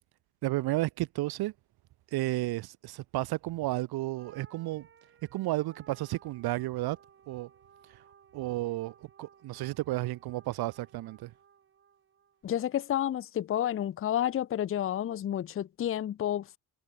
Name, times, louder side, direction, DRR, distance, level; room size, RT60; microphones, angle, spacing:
voice 1, 0.4-1.5 2.1-4.9 5.3-7.0 7.3-7.5 8.3-11.3, right 17 dB, 90° right, 0.9 m, -32 dB
sound 1, 4.1-12.7, right 7 dB, 35° right, 2.6 m, -59 dB
voice 2, 12.4-16.6, left 11 dB, 35° left, 0.7 m, -30 dB
cardioid pair, 170°, 36 cm